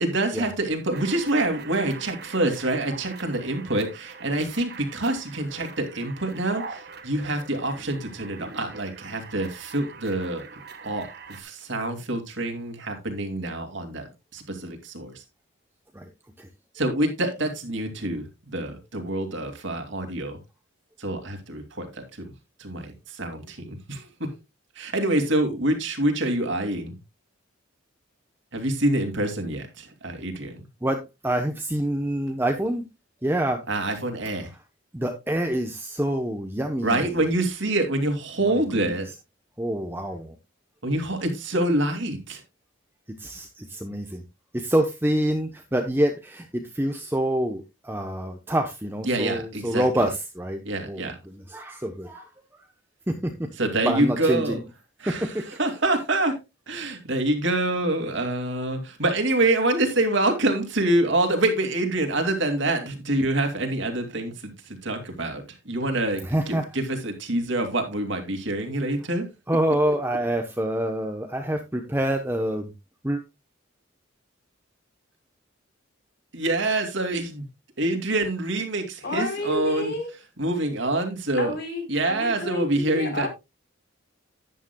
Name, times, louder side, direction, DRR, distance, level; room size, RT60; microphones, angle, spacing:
voice 1, 0.0-10.4 10.8-14.1 14.3-15.2 16.7-20.4 21.0-22.3 22.6-24.3 24.8-27.0 28.5-30.6 33.7-34.5 36.8-39.1 40.8-42.4 49.1-50.1 50.6-51.2 53.6-54.6 55.0-56.3 56.7-69.2 69.9-70.2 76.3-77.4 77.8-79.9 80.4-81.5 81.9-83.3, right 1 dB, 70° right, 2.5 m, -26 dB
sound 1, 0.9-11.4, right 4 dB, 50° right, 1.3 m, -43 dB
voice 2, 30.8-32.9 33.2-33.6 34.9-37.1 38.5-38.9 39.6-40.4 43.2-44.2 44.5-52.2 52.5-52.6 53.1-53.5 53.8-54.6 55.1-55.4 66.2-66.6 69.5-72.7 73.0-73.2, right 1 dB, 10° right, 0.8 m, -26 dB
voice 3, 79.0-80.1 81.4-83.3, left 1 dB, 55° left, 3.7 m, -31 dB
11.5 x 10.0 x 2.3 m
head